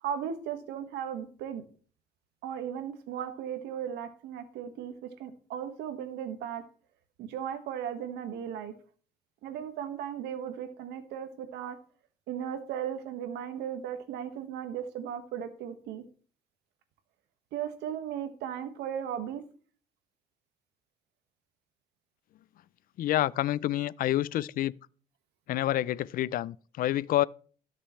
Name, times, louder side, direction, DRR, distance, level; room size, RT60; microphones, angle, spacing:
voice 1, 0.0-1.6 2.4-6.6 7.2-8.7 9.4-11.8 12.3-16.0 17.5-19.4, right 9 dB, 85° right, 1.5 m, -36 dB
voice 2, 23.0-24.8 25.5-27.3, left 13 dB, 55° left, 0.4 m, -28 dB
18.0 x 6.7 x 3.1 m
cardioid pair, 110°, 17 cm